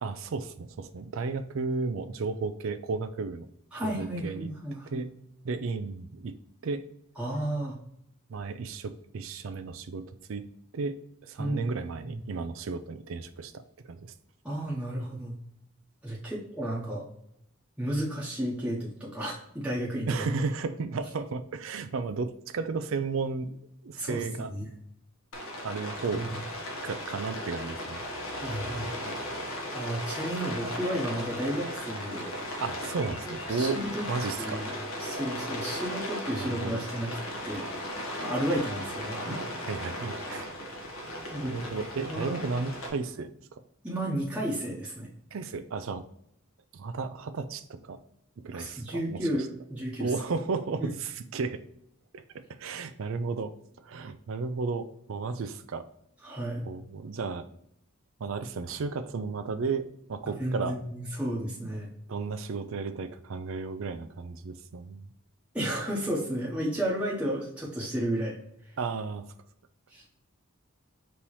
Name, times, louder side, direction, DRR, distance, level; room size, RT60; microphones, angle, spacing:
voice 1, 0.0-3.5 3.8-4.5 4.9-5.1 5.4-6.4 6.6-6.8 8.3-10.4 10.7-13.5 13.8-14.1 20.1-23.6 23.8-24.5 25.6-26.3 26.8-28.1 28.4-28.7 32.6-33.8 34.1-34.6 36.3-36.8 39.7-40.5 41.5-43.6 45.3-46.0 46.7-48.0 48.4-49.2 50.0-51.6 52.1-52.2 52.6-53.5 53.8-55.9 56.6-57.5 58.2-60.8 61.6-61.7 62.1-65.1 68.8-69.3, right 4 dB, 65° right, 11 dB, 0.4 m, -33 dB
voice 2, 3.7-5.1 7.2-7.8 11.4-11.8 12.0-12.2 14.4-15.3 16.0-17.1 17.8-20.3 24.0-24.7 26.1-26.3 28.3-29.1 29.7-32.3 33.0-33.1 33.5-34.1 34.4-34.7 35.0-37.1 37.4-37.7 38.2-39.4 41.3-41.6 42.1-42.4 43.8-45.1 48.5-50.1 50.8-50.9 56.2-56.6 60.4-61.9 65.5-68.4 69.9-70.0, right 1 dB, 5° right, -6 dB, 0.8 m, -32 dB
Rain, 25.3-42.9, left 1 dB, 75° left, 1.1 m, -36 dB
5.4 x 2.9 x 3.1 m, 0.73 s
head